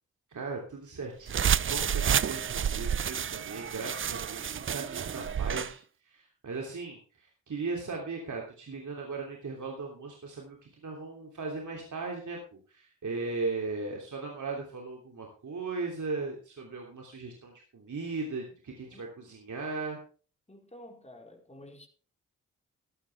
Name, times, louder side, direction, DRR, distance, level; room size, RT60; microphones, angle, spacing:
voice 1, 0.3-20.0, right 3 dB, 60° right, 3.2 m, -38 dB
sound 1, 1.3-5.7, right 8 dB, 40° right, 0.5 m, -30 dB
voice 2, 20.5-21.9, left 1 dB, 20° left, 4.5 m, -50 dB
14.5 x 11.5 x 3.5 m
supercardioid pair, 40°, 34 cm